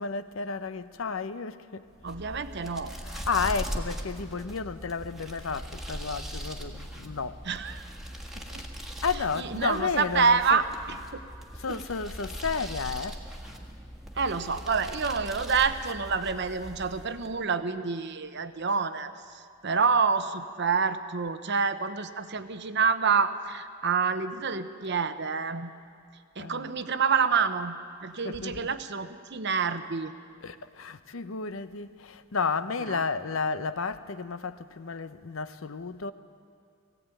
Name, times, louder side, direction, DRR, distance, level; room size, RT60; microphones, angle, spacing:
voice 1, 0.0-1.9 3.0-7.4 8.4-8.5 9.0-10.6 11.5-13.2 26.4-26.7 28.2-28.7 30.4-36.1, left 5 dB, 75° left, 0.7 m, -32 dB
sound 1, 1.9-17.4, equal, ahead, 1.6 m, -40 dB
voice 2, 2.0-2.9 7.4-7.8 8.4-8.6 9.3-10.6 10.9-11.2 11.7-11.8 14.1-25.7 26.4-27.8 28.0-30.1 32.9-33.0, right 5 dB, 55° right, 0.9 m, -27 dB
20.0 x 16.0 x 9.1 m
head